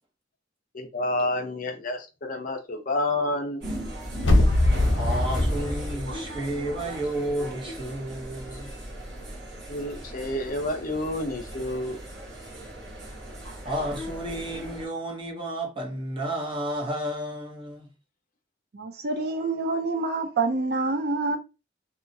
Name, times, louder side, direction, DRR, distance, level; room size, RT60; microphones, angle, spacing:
voice 1, 0.7-3.7 8.5-8.6 9.7-12.0, left 1 dB, 45° left, 0.6 m, -29 dB
sound 1, 3.6-14.9, equal, 75° right, 1.1 m, -35 dB
sound 2, 4.2-7.1 7.4-7.5, left 1 dB, 85° left, 0.7 m, -24 dB
voice 2, 5.0-8.8 13.6-17.9, right 1 dB, 25° right, 0.8 m, -32 dB
voice 3, 18.7-21.4, right 3 dB, 55° right, 0.5 m, -27 dB
2.8 x 2.3 x 2.6 m
head